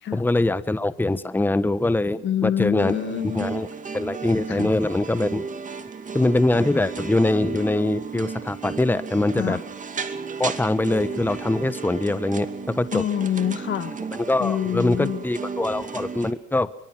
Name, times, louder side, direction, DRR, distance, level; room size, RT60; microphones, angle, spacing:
voice 1, 0.1-2.9 3.2-3.7 3.9-5.4 6.1-9.6 10.4-13.0 14.1-16.7, left 2 dB, 10° left, 14 dB, 1.1 m, -23 dB
voice 2, 2.2-3.5 4.5-4.7 9.3-9.6 12.9-14.1 14.4-15.2, left 10 dB, 70° left, 12 dB, 1.7 m, -26 dB
sound 1, 2.8-16.3, right 5 dB, 40° right, 2.5 m, -34 dB
24.5 x 24.0 x 5.9 m, 0.62 s
cardioid pair, 90°, 20 cm